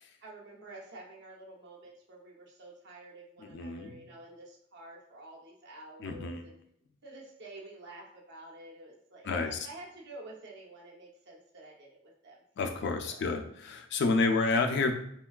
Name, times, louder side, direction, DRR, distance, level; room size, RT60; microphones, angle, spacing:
voice 1, 0.2-6.6 7.0-13.4 14.2-14.7, right 2 dB, 60° right, -2 dB, 0.7 m, -50 dB
voice 2, 3.5-4.0 6.0-6.4 9.2-9.7 12.6-14.9, left 3 dB, 60° left, 4 dB, 0.4 m, -29 dB
3.3 x 2.2 x 2.2 m, 0.68 s
head